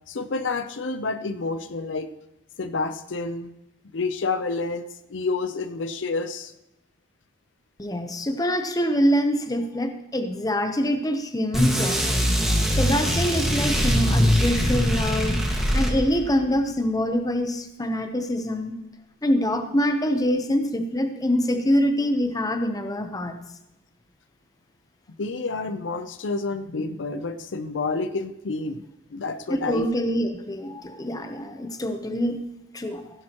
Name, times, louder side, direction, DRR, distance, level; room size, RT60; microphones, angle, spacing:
voice 1, 0.1-2.1 2.6-3.5 3.9-6.5 25.2-28.8 29.1-29.9, left 3 dB, 85° left, 11 dB, 0.6 m, -29 dB
voice 2, 7.8-12.1 12.7-15.4 15.7-18.8 19.2-23.4 29.7-32.4 32.7-33.0, equal, 20° left, 7 dB, 0.8 m, -25 dB
sound 1, 11.5-16.3, equal, ahead, 1.7 m, -22 dB
15.5 x 11.0 x 3.0 m, 0.89 s
head